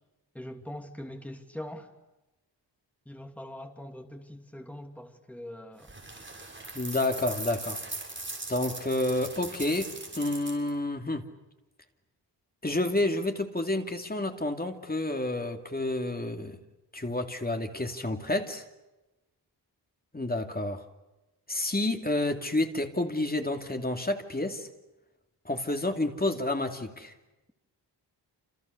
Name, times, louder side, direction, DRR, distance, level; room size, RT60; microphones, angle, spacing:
voice 1, 0.3-1.9 3.0-5.9, left 1 dB, 5° left, 5 dB, 2.8 m, -42 dB
sound 1, 5.8-10.7, right 2 dB, 25° right, 7.1 m, -40 dB
voice 2, 6.7-7.8 8.5-11.3 12.6-16.6 16.9-18.6 20.1-20.8 21.5-24.7 25.4-27.1, left 2 dB, 20° left, 5 dB, 2.7 m, -29 dB
29.5 x 28.0 x 6.8 m, 1.0 s
wide cardioid pair, 115°, 43 cm